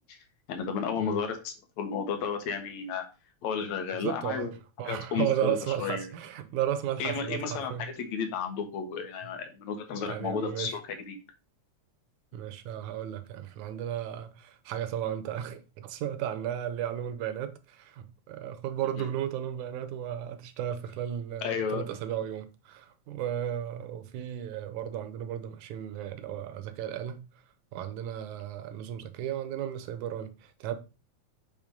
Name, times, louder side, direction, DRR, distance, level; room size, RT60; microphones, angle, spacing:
voice 1, 0.5-3.1 3.4-4.5 4.8-6.1 7.0-11.2 21.4-21.8, left 6 dB, 75° left, 2.6 m, -33 dB
voice 2, 4.0-7.9 9.9-10.8 12.3-27.2 27.7-30.7, right 10 dB, 85° right, 2.3 m, -34 dB
8.0 x 3.5 x 5.1 m
omnidirectional pair, 3.3 m